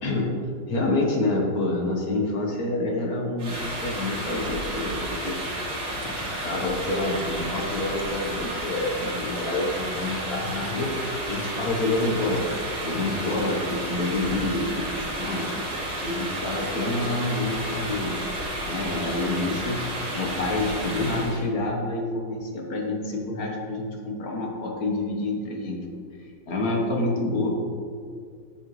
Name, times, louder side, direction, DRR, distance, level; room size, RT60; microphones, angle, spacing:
voice 1, 0.0-0.3 0.7-5.4 5.9-15.6 16.0-18.2 18.6-19.9 20.1-25.8 26.5-27.7, left 2 dB, 50° left, 0 dB, 1.6 m, -28 dB
sound 1, 3.4-21.4, right 1 dB, 80° right, 3.7 m, -32 dB
9.9 x 9.0 x 3.3 m, 2.2 s
omnidirectional pair, 2.3 m